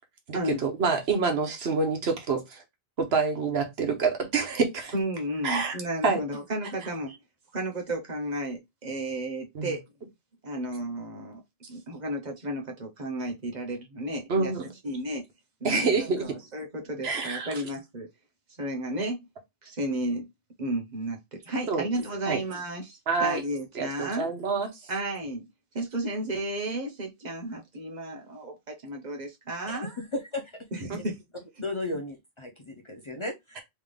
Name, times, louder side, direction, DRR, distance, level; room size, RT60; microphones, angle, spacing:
voice 1, 0.3-2.6 3.0-4.9 5.4-5.8 6.0-6.2 9.5-9.8 14.3-14.6 15.6-16.4 17.0-17.5 21.7-21.9 22.3-22.4 23.1-23.4 23.7-24.7 30.9-31.0, right 4 dB, 80° right, 1.2 m, -27 dB
voice 2, 4.9-7.2 7.5-9.9 10.4-11.4 11.7-15.2 15.6-18.1 18.6-19.2 19.6-20.3 20.6-24.3 24.9-25.5 25.7-30.0 30.7-31.2, right 1 dB, 45° right, 1.2 m, -33 dB
voice 3, 29.7-30.8 31.6-33.6, left 2 dB, 35° left, 0.6 m, -35 dB
3.6 x 3.2 x 3.4 m
omnidirectional pair, 1.1 m